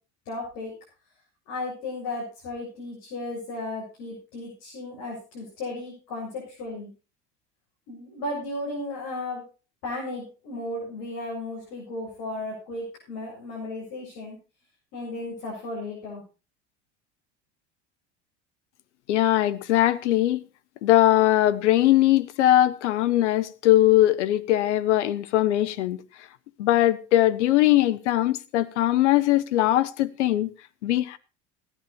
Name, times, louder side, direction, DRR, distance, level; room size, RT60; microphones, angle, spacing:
voice 1, 0.3-0.7 1.5-6.9 7.9-9.4 9.8-14.4 14.9-16.2, left 2 dB, 70° left, 7.4 m, -35 dB
voice 2, 19.1-20.5 20.8-26.0 26.6-30.5 30.8-31.2, left 14 dB, 85° left, 1.1 m, -21 dB
17.0 x 10.5 x 4.2 m
hypercardioid pair, 85°, 34 cm